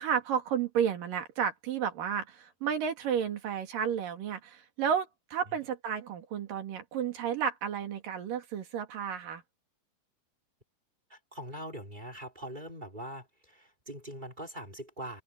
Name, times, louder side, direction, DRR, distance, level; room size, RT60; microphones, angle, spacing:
voice 1, 0.0-9.4, right 8 dB, 75° right, 3.8 m, -32 dB
voice 2, 11.1-15.2, equal, 15° right, 3.4 m, -42 dB
open air
omnidirectional pair, 3.9 m